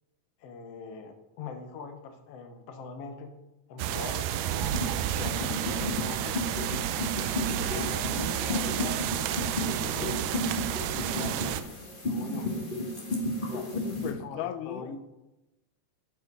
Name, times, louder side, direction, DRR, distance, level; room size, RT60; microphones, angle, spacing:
voice 1, 0.4-3.3 3.7-4.6 5.2-6.4 7.3-10.1 10.8-11.6 11.9-12.5 13.4-13.7 14.2-15.0, left 4 dB, 60° left, 5 dB, 2.0 m, -42 dB
sound 1, 3.8-11.6, right 11 dB, 90° right, 2.2 m, -31 dB
sound 2, 4.6-14.1, left 1 dB, 30° left, 0.9 m, -33 dB
voice 2, 13.7-15.0, left 11 dB, 85° left, 11 dB, 2.1 m, -36 dB
13.0 x 7.4 x 4.0 m, 0.99 s
omnidirectional pair, 3.6 m